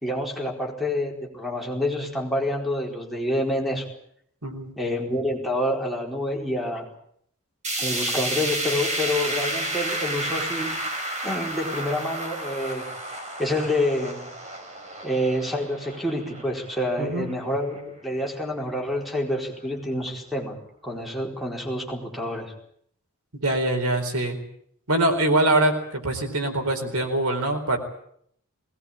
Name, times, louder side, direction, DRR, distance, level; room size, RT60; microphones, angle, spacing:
voice 1, 0.0-3.9 4.8-6.9 7.8-10.8 11.2-12.9 13.4-14.3 15.0-20.6 20.8-22.5, left 1 dB, ahead, 0 dB, 4.6 m, -27 dB
voice 2, 4.4-4.7 17.0-17.3 23.4-24.4 24.9-27.8, right 1 dB, 85° right, 6 dB, 4.4 m, -23 dB
sound 1, 7.6-17.8 18.2-18.3 18.7-18.8 19.6-19.7, right 1 dB, 30° right, 4.6 m, -31 dB
21.0 x 19.0 x 8.7 m, 0.68 s
head